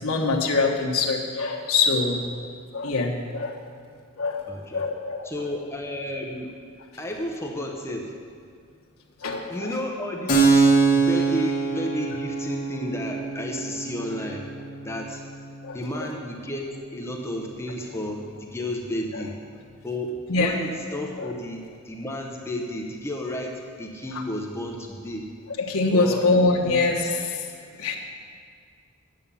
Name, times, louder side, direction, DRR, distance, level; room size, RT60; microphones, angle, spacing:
voice 1, 0.0-2.2 2.7-3.6 4.2-5.3 9.2-9.7 15.6-15.8 19.1-19.2 20.3-20.6 21.2-21.3 25.6-27.4 27.8-28.0, left 3 dB, 75° left, -2 dB, 1.2 m, -24 dB
voice 2, 4.5-4.8 5.2-6.5 7.0-8.1 9.5-14.5 14.8-15.2 15.7-19.4 19.8-25.3 25.9-26.2 26.6-26.8, left 1 dB, 10° left, 0 dB, 0.8 m, -32 dB
Keyboard (musical), 10.3-17.6, right 4 dB, 40° left, 1.6 m, -25 dB
9.2 x 7.1 x 6.9 m, 2.1 s
head